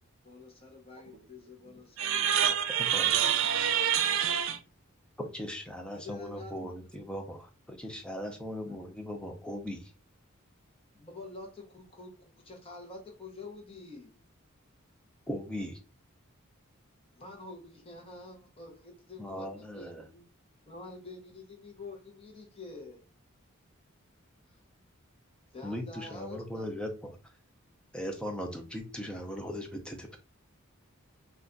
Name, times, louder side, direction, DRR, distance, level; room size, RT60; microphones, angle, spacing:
voice 1, 0.2-2.2 3.2-3.3 5.9-6.6 8.6-8.7 9.2-9.5 10.9-14.2 17.1-20.2 20.7-23.0 24.5-24.6 25.5-26.7, left 3 dB, 25° left, 0.8 m, -47 dB
voice 2, 2.0-4.6, right 9 dB, 65° right, 0.3 m, -27 dB
voice 3, 2.8-3.1 5.2-9.9 15.3-15.8 19.2-20.0 25.6-27.1 27.9-30.2, equal, 5° left, 0.4 m, -38 dB
2.4 x 2.2 x 3.7 m
head